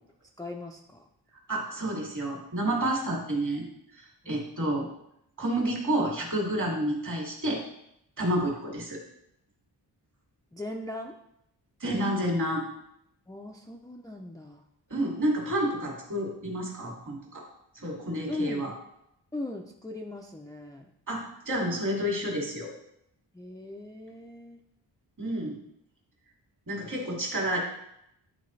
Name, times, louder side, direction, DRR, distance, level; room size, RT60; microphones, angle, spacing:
voice 1, 0.4-1.0 4.2-4.5 10.5-11.2 13.3-14.6 18.3-18.6 19.3-20.9 21.9-22.1 23.3-24.6 27.0-27.2, left 2 dB, 10° left, 1 dB, 0.4 m, -39 dB
voice 2, 1.5-3.7 4.3-4.9 5.4-7.6 8.2-9.0 11.8-12.7 14.9-17.4 17.7-18.7 21.1-22.7 25.2-25.6 26.7-27.6, right 1 dB, 45° right, -2 dB, 2.2 m, -29 dB
11.0 x 4.2 x 3.1 m, 0.78 s
wide cardioid pair, 130°, 42 cm